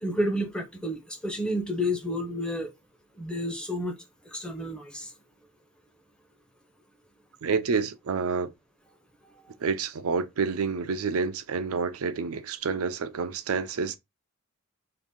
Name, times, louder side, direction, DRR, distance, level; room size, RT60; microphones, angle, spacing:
voice 1, 0.0-2.7 3.2-3.9 4.3-5.1, equal, 5° left, 0.6 m, -30 dB
voice 2, 7.4-8.5 9.6-14.0, right 5 dB, 85° right, 0.5 m, -28 dB
2.8 x 2.5 x 3.6 m
head